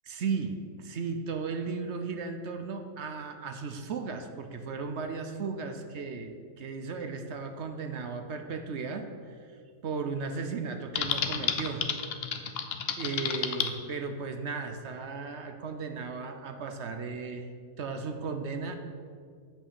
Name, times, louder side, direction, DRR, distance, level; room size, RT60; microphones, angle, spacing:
voice 1, 0.1-9.5 9.8-11.9 12.4-12.6 13.0-17.5 17.8-18.8, right 4 dB, 55° right, 7 dB, 0.8 m, -35 dB
Typing, 10.9-13.7, left 7 dB, 55° left, 0.7 m, -31 dB
8.8 x 5.8 x 7.0 m, 2.1 s
omnidirectional pair, 1.6 m